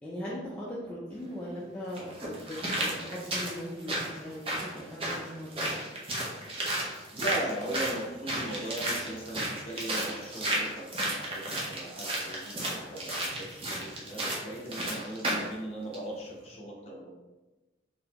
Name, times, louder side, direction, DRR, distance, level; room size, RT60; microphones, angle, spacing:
voice 1, 0.0-5.5, equal, 5° left, -7 dB, 0.4 m, -39 dB
sound 1, 1.1-1.2 1.9-15.5 15.9-16.0, right 1 dB, 30° right, 0.7 m, -33 dB
voice 2, 7.1-17.1, right 1 dB, 35° left, -3 dB, 0.8 m, -39 dB
3.9 x 2.8 x 2.9 m, 1.1 s
head